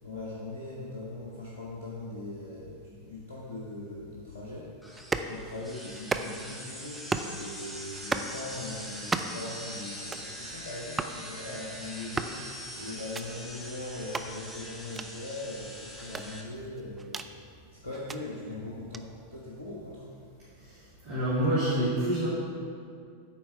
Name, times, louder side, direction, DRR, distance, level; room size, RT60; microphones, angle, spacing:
voice 1, 0.0-4.7 5.2-12.5 12.7-17.3 17.7-20.1, left 2 dB, 80° left, -5 dB, 1.1 m, -40 dB
sound 1, 4.8-16.4, equal, ahead, 1.4 m, -43 dB
sound 2, 5.0-5.3 5.9-6.5 6.9-7.4 7.9-8.3 8.9-9.5 9.9-10.3 10.9-11.2 11.9-12.4 13.0-13.3 14.0-14.3 14.9-15.1 16.0-17.3 17.9-18.2 18.9-19.0, right 4 dB, 15° right, 0.4 m, -34 dB
voice 2, 20.6-22.3, right 1 dB, 50° right, -9 dB, 1.8 m, -28 dB
8.9 x 4.4 x 5.7 m, 2.3 s
figure-of-eight pair, 90°, 0 cm